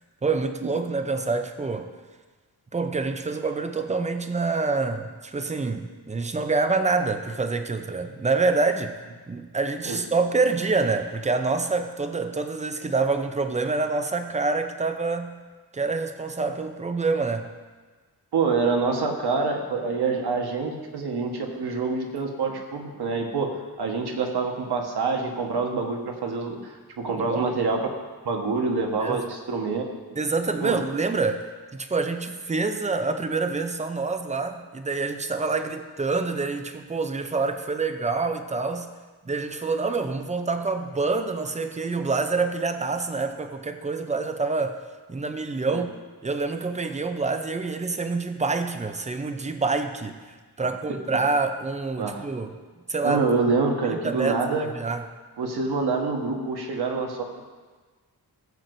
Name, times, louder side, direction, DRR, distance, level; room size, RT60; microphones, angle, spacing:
voice 1, 0.2-1.9 2.7-8.9 9.3-15.4 15.7-17.5 27.2-27.4 29.0-29.2 30.2-31.4 31.7-38.9 39.2-44.8 45.1-45.9 46.2-52.5 52.9-53.2 53.9-54.4 54.7-55.0, right 3 dB, 20° right, 7 dB, 0.5 m, -26 dB
voice 2, 18.3-27.8 28.2-29.9 30.6-30.8 45.7-45.8 52.0-52.3 53.0-54.7 55.4-57.2, right 4 dB, 80° right, 2 dB, 1.3 m, -26 dB
16.0 x 7.8 x 2.6 m, 1.4 s
wide cardioid pair, 165°, 39 cm